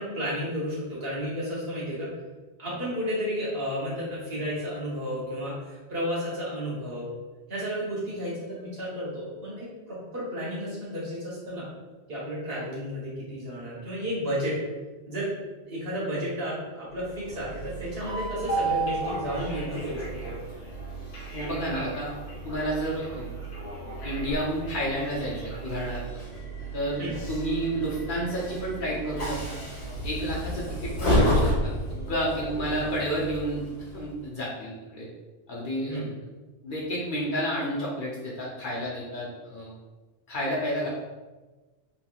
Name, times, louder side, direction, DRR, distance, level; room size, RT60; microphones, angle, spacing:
voice 1, 0.0-2.1 2.6-7.1 7.5-11.6 12.1-14.6 15.1-15.3 15.7-20.4 27.0-27.2 32.4-32.5 32.8-32.9 35.9-36.1, equal, 60° right, -7 dB, 1.3 m, -32 dB
Train, 17.0-34.3, right 1 dB, 85° left, 1.2 m, -32 dB
voice 2, 21.3-22.1 22.4-23.3 24.0-26.0 26.7-27.0 27.3-29.6 30.0-33.7 33.9-35.1 35.5-36.1 36.6-39.7 40.3-40.9, equal, 55° left, -5 dB, 0.8 m, -30 dB
3.0 x 2.9 x 2.3 m, 1.2 s
omnidirectional pair, 1.1 m